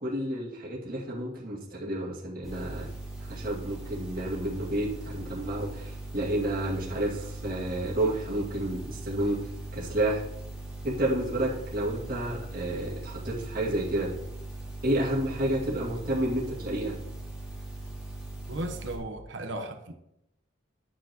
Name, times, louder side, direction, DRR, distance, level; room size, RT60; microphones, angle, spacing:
voice 1, 0.0-2.9 3.2-10.2 10.8-14.1 14.8-17.0, right 1 dB, 45° right, -6 dB, 2.3 m, -30 dB
sound 1, 2.4-19.0, right 1 dB, ahead, 2.4 m, -40 dB
voice 2, 18.5-19.9, right 1 dB, 70° right, 5 dB, 1.0 m, -35 dB
12.0 x 5.8 x 3.0 m, 0.82 s
head